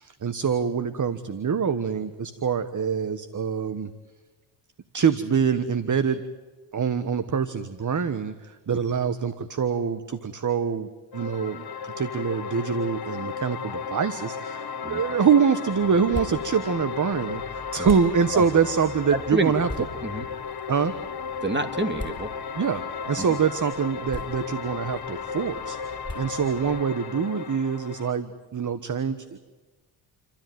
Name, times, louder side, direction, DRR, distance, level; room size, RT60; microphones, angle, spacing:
voice 1, 0.0-3.9 4.9-6.2 6.7-19.7 20.7-20.9 22.5-25.8 26.1-29.4, right 6 dB, 35° right, 13 dB, 1.4 m, -25 dB
sound 1, 11.1-28.1, left 6 dB, 50° left, 1.7 m, -35 dB
sound 2, 15.7-26.8, left 1 dB, 10° left, 6.6 m, -42 dB
voice 2, 19.1-19.5 19.8-20.3 21.4-22.3 23.2-23.3, right 2 dB, 20° right, 8 dB, 2.9 m, -28 dB
29.0 x 13.5 x 9.4 m, 1.3 s
supercardioid pair, 65°, 49 cm